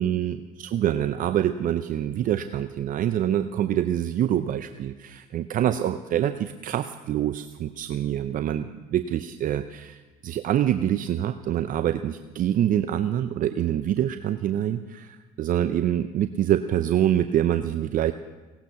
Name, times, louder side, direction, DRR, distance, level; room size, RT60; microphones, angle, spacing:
voice 1, 0.0-18.1, right 11 dB, 45° right, 10 dB, 0.6 m, -25 dB
17.0 x 12.0 x 5.8 m, 1.3 s
hypercardioid pair, 75°, 19 cm